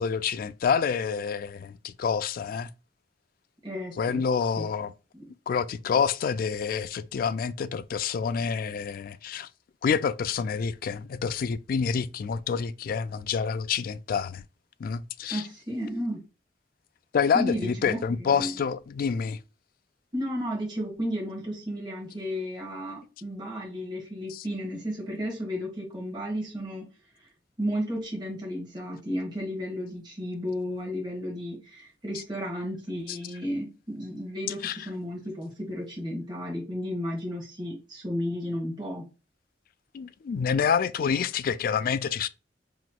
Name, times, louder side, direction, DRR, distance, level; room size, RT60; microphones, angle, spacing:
voice 1, 0.0-2.7 4.0-4.9 5.5-9.5 9.8-14.4 14.8-15.4 17.1-19.4 24.3-24.4 33.1-33.2 34.6-34.8 39.9-42.3, left 6 dB, 55° left, 0.3 m, -27 dB
voice 2, 3.6-4.2 4.6-4.7 5.1-5.3 15.3-16.2 17.3-18.5 20.1-26.9 27.2-27.3 27.6-39.0, equal, 25° right, 1.3 m, -33 dB
5.0 x 2.9 x 2.2 m
head